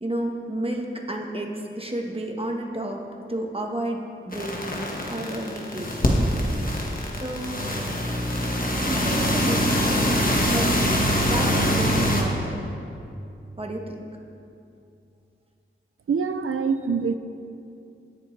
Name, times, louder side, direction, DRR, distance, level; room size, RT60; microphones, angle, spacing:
voice 1, 0.0-3.0 3.3-6.3 7.1-7.7 8.8-10.2 10.5-10.7 11.2-12.6 13.6-14.0, right 1 dB, 25° right, 1 dB, 1.3 m, -31 dB
sound 1, 4.3-12.2, equal, 45° left, 1.4 m, -24 dB
voice 2, 16.1-17.2, right 5 dB, 85° right, 9 dB, 0.5 m, -24 dB
17.5 x 6.7 x 3.3 m, 2.6 s
wide cardioid pair, 50°, 21 cm